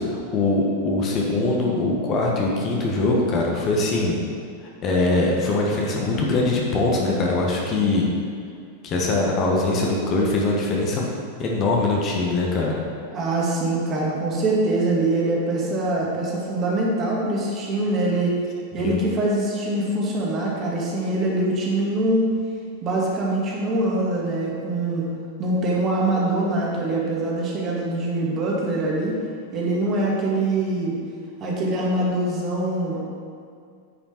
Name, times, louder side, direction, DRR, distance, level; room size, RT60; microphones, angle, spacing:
voice 1, 0.0-4.2 4.6-8.1 8.8-11.1 11.4-12.8 18.7-19.0, left 2 dB, 35° left, -2 dB, 1.4 m, -22 dB
voice 2, 13.1-18.3 18.7-22.2 22.8-25.1 25.4-29.1 29.5-31.0 31.4-33.0, right 2 dB, 30° right, -4 dB, 2.0 m, -23 dB
9.5 x 5.7 x 4.5 m, 2.3 s
figure-of-eight pair, 90°, 0 cm